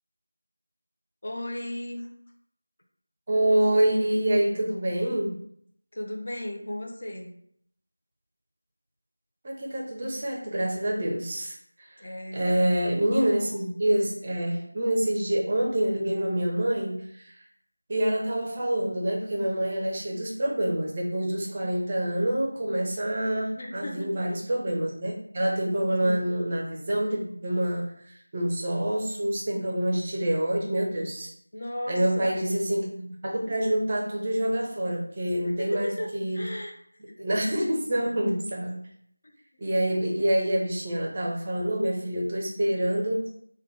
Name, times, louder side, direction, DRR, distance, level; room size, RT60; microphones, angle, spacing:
voice 1, 1.2-2.1 5.9-7.3 12.0-12.8 21.5-21.6 23.5-24.1 26.0-26.2 31.5-32.5 35.6-36.8 37.1-37.3 39.2-39.3, left 1 dB, 40° left, 1 dB, 0.6 m, -36 dB
voice 2, 3.3-5.3 9.4-12.1 12.3-17.4 17.9-31.3 31.9-36.4 37.2-38.7 39.6-43.3, right 1 dB, 25° right, -1 dB, 0.5 m, -27 dB
3.6 x 2.2 x 3.3 m, 0.67 s
figure-of-eight pair, 170°, 0 cm